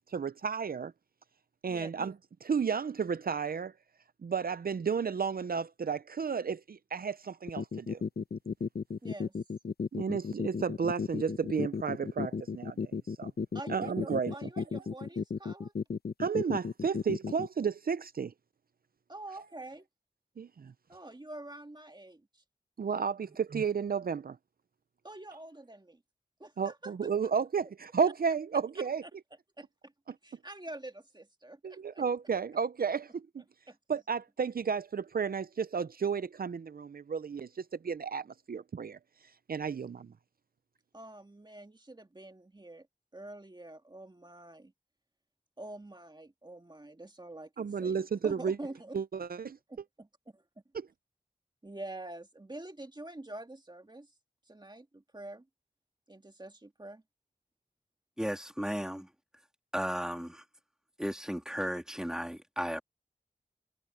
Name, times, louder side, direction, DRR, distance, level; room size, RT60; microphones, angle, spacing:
voice 1, 0.1-0.9 1.6-2.1 2.4-3.7 4.2-8.0 9.9-13.3 13.7-14.4 16.2-18.3 20.4-20.7 22.8-24.4 26.6-29.0 31.6-33.3 33.9-39.0 39.5-40.1 47.6-48.6 48.9-49.6 50.7-50.9, right 6 dB, 65° right, 0.5 m, -32 dB
sound 1, 7.5-17.5, left 5 dB, 75° left, 0.9 m, -34 dB
voice 2, 9.0-9.3 13.5-15.7 19.1-19.9 20.9-22.4 23.2-23.4 25.0-26.0 26.4-27.1 28.0-28.1 29.0-29.1 29.6-29.9 30.2-32.0 33.7-33.8 40.9-42.9 43.1-44.7 45.6-49.0 49.7-50.1 50.3-50.4 51.6-54.1 54.5-55.5 56.1-57.0, right 2 dB, 25° right, 1.9 m, -46 dB
voice 3, 58.2-59.1 59.7-60.4 61.0-62.8, equal, 5° right, 3.3 m, -35 dB
wide cardioid pair, 85°, 16 cm